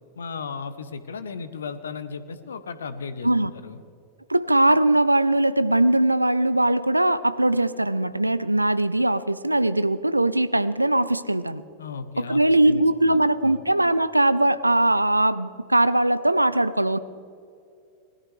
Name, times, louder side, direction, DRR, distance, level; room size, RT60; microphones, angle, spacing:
voice 1, 0.1-3.8 11.8-13.6, left 5 dB, 70° left, 12 dB, 0.9 m, -36 dB
voice 2, 4.3-11.6 12.2-17.0, right 1 dB, 85° right, 15 dB, 0.4 m, -20 dB
20.0 x 13.5 x 3.3 m, 2.5 s
figure-of-eight pair, 90°, 0 cm